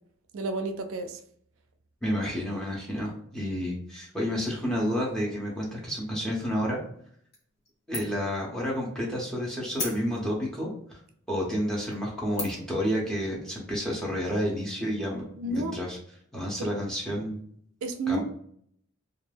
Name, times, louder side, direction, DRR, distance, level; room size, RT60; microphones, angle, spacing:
voice 1, 0.3-1.2 15.4-15.8 16.6-16.7 17.8-18.2, right 2 dB, 75° right, 7 dB, 0.4 m, -30 dB
voice 2, 2.0-6.8 7.9-10.7 11.3-16.0 16.3-17.4 18.1-18.2, equal, 5° left, -4 dB, 0.7 m, -30 dB
sound 1, 7.3-7.7 7.9-8.3 8.7-8.8 9.7-10.4 11.1-11.2 11.7-11.9 12.4-12.8, left 2 dB, 50° left, 1.0 m, -36 dB
2.3 x 2.0 x 3.2 m, 0.64 s
head